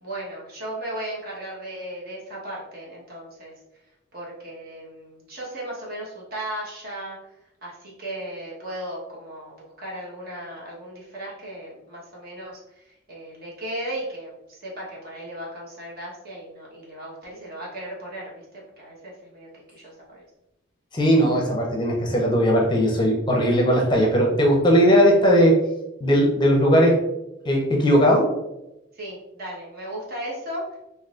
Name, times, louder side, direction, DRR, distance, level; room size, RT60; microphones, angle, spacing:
voice 1, 0.0-3.5 4.1-7.2 7.6-20.2 28.9-30.8, right 1 dB, 50° right, -4 dB, 1.2 m, -36 dB
voice 2, 20.9-25.6 26.0-27.0 27.4-28.3, equal, 25° left, -1 dB, 0.6 m, -18 dB
4.0 x 2.7 x 2.4 m, 0.92 s
head